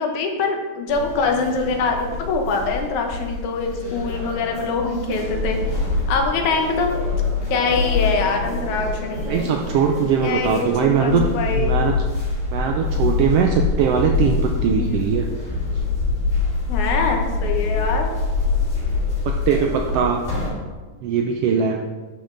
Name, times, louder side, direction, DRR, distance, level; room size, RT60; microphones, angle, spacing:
voice 1, 0.0-5.6 6.1-6.9 7.5-9.5 10.2-11.7 14.7-15.0 16.7-18.1, left 4 dB, 80° left, 3 dB, 2.4 m, -24 dB
sound 1, 0.9-20.5, left 4 dB, 25° left, 3.0 m, -25 dB
voice 2, 9.3-11.2 11.5-11.9 12.5-15.2 19.2-20.2 21.0-21.8, right 7 dB, 85° right, 3 dB, 1.3 m, -20 dB
11.5 x 5.3 x 3.8 m, 1.3 s
omnidirectional pair, 3.4 m